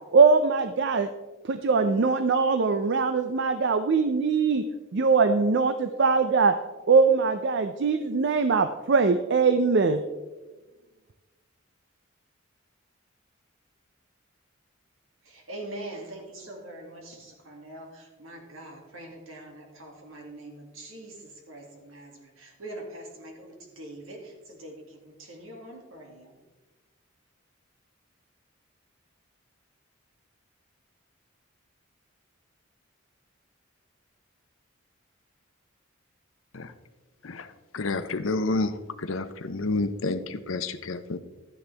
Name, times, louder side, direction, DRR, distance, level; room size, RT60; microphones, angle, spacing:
voice 1, 0.1-1.1 1.4-4.6 4.9-6.6 6.9-10.0, right 4 dB, 55° right, 9 dB, 0.5 m, -22 dB
voice 2, 15.2-26.4, right 1 dB, 80° right, 1 dB, 2.3 m, -43 dB
voice 3, 37.7-41.2, left 3 dB, 75° left, 11 dB, 0.7 m, -29 dB
12.5 x 9.6 x 3.4 m, 1.2 s
head